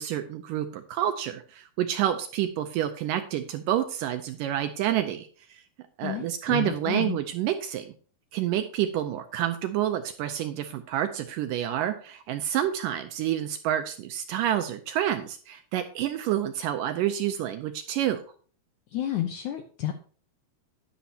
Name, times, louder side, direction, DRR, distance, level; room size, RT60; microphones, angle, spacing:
voice 1, 0.0-5.6 6.0-7.8 8.3-18.2, right 11 dB, 80° right, 8 dB, 2.0 m, -28 dB
voice 2, 6.0-7.2 18.9-19.9, left 12 dB, 75° left, 5 dB, 1.8 m, -31 dB
11.0 x 10.5 x 2.8 m, 0.42 s
omnidirectional pair, 4.3 m